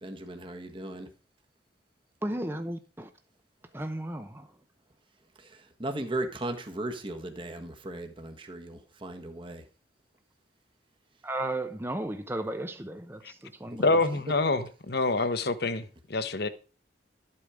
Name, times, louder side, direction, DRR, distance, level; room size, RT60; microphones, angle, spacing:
voice 1, 0.0-1.1 5.4-9.6 13.7-13.9, right 1 dB, 25° right, 1.5 m, -37 dB
voice 2, 2.2-3.1 3.7-4.5 11.2-13.9, right 1 dB, 10° right, 0.9 m, -34 dB
voice 3, 13.8-16.5, left 3 dB, 60° left, 1.1 m, -27 dB
12.5 x 8.7 x 5.0 m
head